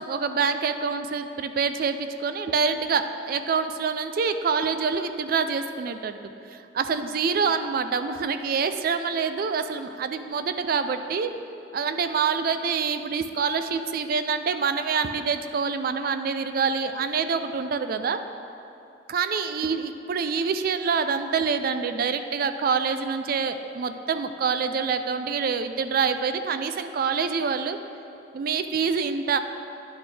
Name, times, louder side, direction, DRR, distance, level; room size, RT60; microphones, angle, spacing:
voice 1, 0.0-6.2 6.5-11.3 11.7-18.2 19.1-27.8 28.3-29.4, right 5 dB, 50° right, 9 dB, 0.3 m, -26 dB
10.5 x 6.0 x 3.3 m, 2.8 s
head